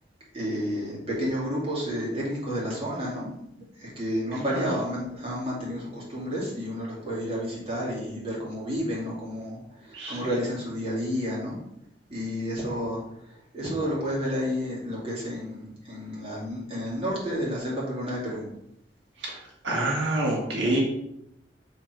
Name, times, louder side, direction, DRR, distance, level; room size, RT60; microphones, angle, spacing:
voice 1, 0.3-3.3 3.6-11.6 12.1-18.4, equal, 30° right, -6 dB, 2.6 m, -31 dB
voice 2, 19.6-20.8, right 2 dB, 90° right, -2 dB, 1.7 m, -27 dB
7.4 x 3.9 x 4.6 m, 0.81 s
head